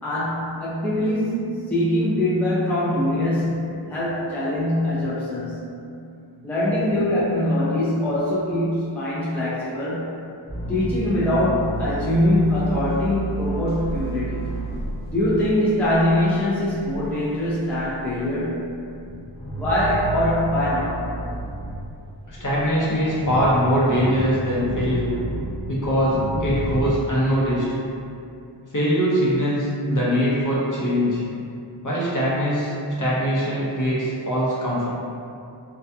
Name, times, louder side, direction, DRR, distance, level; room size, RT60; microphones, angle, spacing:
voice 1, 0.0-5.6 6.4-10.2 10.7-14.4 15.1-18.6 19.5-21.1, left 1 dB, 5° left, -9 dB, 0.4 m, -23 dB
sound 1, 10.5-17.2 17.4-18.4 18.8-22.0 22.3-26.9, right 2 dB, 20° left, 1.1 m, -31 dB
voice 2, 22.3-25.1 25.7-27.7 28.7-31.2 31.8-34.9, equal, 40° left, -8 dB, 0.7 m, -22 dB
2.3 x 2.2 x 2.7 m, 2.5 s
wide cardioid pair, 60°, 47 cm